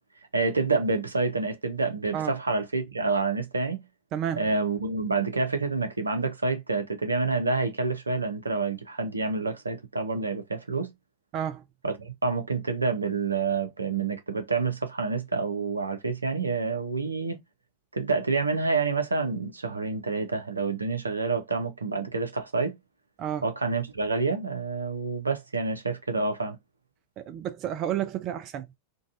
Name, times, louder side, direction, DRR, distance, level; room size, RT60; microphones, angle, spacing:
voice 1, 0.3-3.8 4.3-10.9 11.8-17.4 17.9-22.7 23.4-26.6, right 3 dB, 80° right, 0.8 m, -28 dB
voice 2, 4.1-4.5 11.3-11.6 23.2-23.4 27.2-28.7, right 10 dB, 35° right, 0.4 m, -31 dB
3.8 x 2.3 x 2.5 m
figure-of-eight pair, 90°, 0 cm